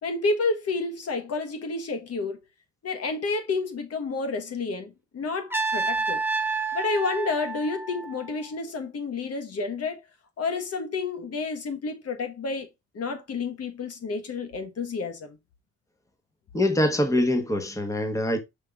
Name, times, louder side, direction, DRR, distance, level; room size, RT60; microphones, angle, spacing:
voice 1, 0.0-2.4 2.8-6.2 6.7-10.0 10.4-12.7 12.9-15.4, left 3 dB, 55° left, 1.4 m, -30 dB
Trumpet, 5.5-8.5, right 4 dB, 5° right, 0.9 m, -29 dB
voice 2, 16.5-18.4, left 1 dB, 10° left, 1.3 m, -24 dB
5.3 x 5.2 x 3.7 m
cardioid pair, 90°, 30 cm